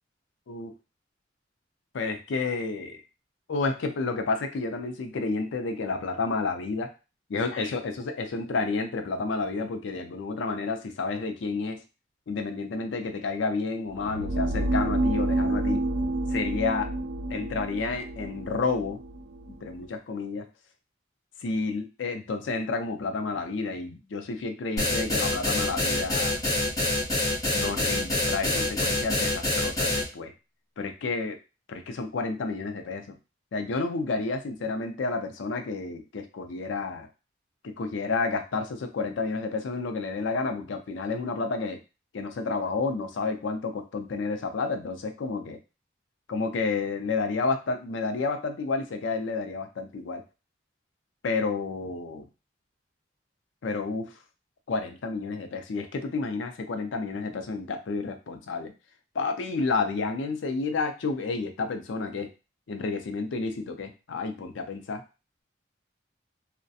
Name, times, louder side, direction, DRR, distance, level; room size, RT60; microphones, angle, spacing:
voice 1, 1.9-3.0 3.5-6.9 7.3-11.8 12.3-15.8 16.3-16.9 17.3-19.0 19.5-20.5 21.4-26.4 27.5-30.3 30.8-31.4 31.7-33.2 33.5-37.1 37.6-41.8 42.1-45.6 46.3-50.2 51.2-52.2 53.6-54.1 54.7-58.7 59.1-62.3 62.7-65.0, left 4 dB, 85° left, 6 dB, 0.4 m, -30 dB
sound 1, 13.9-19.8, right 1 dB, 65° right, 0.4 m, -29 dB
sound 2, 24.8-30.0, left 2 dB, 20° left, 0.9 m, -26 dB
2.4 x 2.1 x 2.6 m, 0.30 s
head